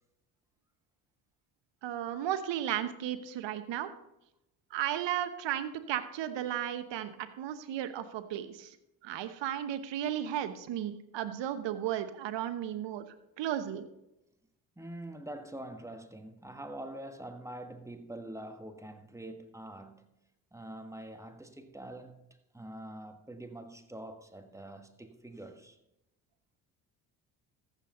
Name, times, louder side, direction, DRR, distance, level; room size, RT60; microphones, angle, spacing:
voice 1, 1.8-3.9 4.7-8.7 9.0-13.0 13.4-13.9, right 11 dB, 60° right, 1.1 m, -34 dB
voice 2, 14.8-20.1 20.5-22.2 22.5-25.8, right 1 dB, 5° right, 1.4 m, -45 dB
14.0 x 7.6 x 3.8 m
hypercardioid pair, 50°, 50 cm